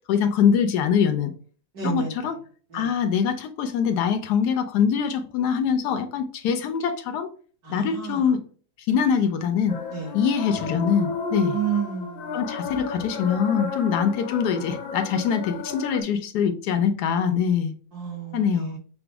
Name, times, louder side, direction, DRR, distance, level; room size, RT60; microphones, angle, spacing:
voice 1, 0.1-1.3 1.8-2.4 2.7-7.3 7.7-8.4 8.9-9.8 10.1-11.6 12.3-17.7 18.3-18.8, left 7 dB, 70° left, 1.0 m, -23 dB
voice 2, 1.7-2.3 2.7-3.0 7.6-8.3 9.9-10.1 11.5-12.4 17.9-18.7, right 7 dB, 55° right, 2.0 m, -31 dB
sound 1, 9.7-16.0, left 4 dB, 90° left, 1.5 m, -33 dB
5.9 x 2.1 x 3.4 m
omnidirectional pair, 2.1 m